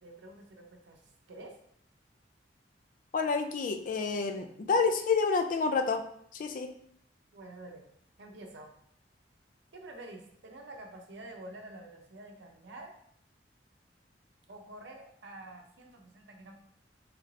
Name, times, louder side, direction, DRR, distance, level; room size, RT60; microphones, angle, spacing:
voice 1, 0.0-1.5 7.3-7.8 8.2-8.7 9.7-12.9 14.5-16.5, right 2 dB, 80° right, 2 dB, 0.6 m, -48 dB
voice 2, 3.1-6.0 6.3-6.7, left 4 dB, 50° left, 7 dB, 0.3 m, -28 dB
3.1 x 2.4 x 3.1 m, 0.66 s
head